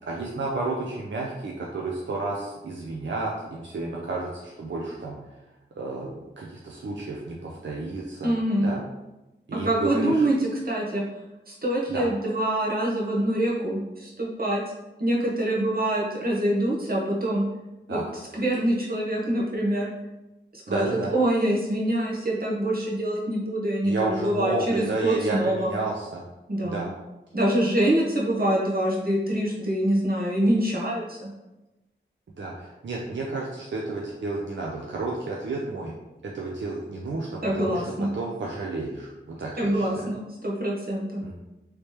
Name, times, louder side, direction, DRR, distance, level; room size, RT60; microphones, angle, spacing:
voice 1, 0.1-5.3 5.8-8.3 8.6-8.8 9.5-10.3 11.9-12.0 17.9-18.0 20.7-21.1 23.8-26.2 26.6-26.9 32.4-35.9 36.2-40.1 41.2-41.3, right 3 dB, 65° right, -2 dB, 0.5 m, -31 dB
voice 2, 8.2-8.7 9.5-11.0 11.5-14.6 15.0-17.4 17.9-18.0 18.3-19.9 20.5-25.7 26.5-26.9 27.3-31.3 37.4-38.1 39.6-41.2, right 1 dB, 45° right, -4 dB, 1.0 m, -25 dB
3.2 x 2.9 x 3.1 m, 1.0 s
wide cardioid pair, 70°, 20 cm